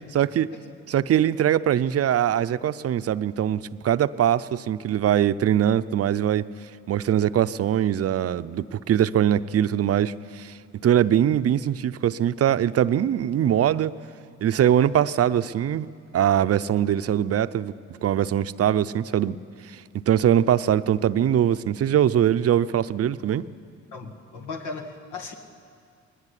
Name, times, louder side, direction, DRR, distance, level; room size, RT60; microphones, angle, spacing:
voice 1, 0.1-0.5 0.9-6.5 6.9-10.5 10.8-14.0 14.4-15.9 16.1-17.7 18.0-19.4 19.9-23.4, right 10 dB, 50° right, 13 dB, 0.6 m, -22 dB
voice 2, 23.9-25.3, left 3 dB, 85° left, 4 dB, 2.1 m, -36 dB
21.0 x 17.5 x 10.0 m, 2.3 s
cardioid pair, 90°, 30 cm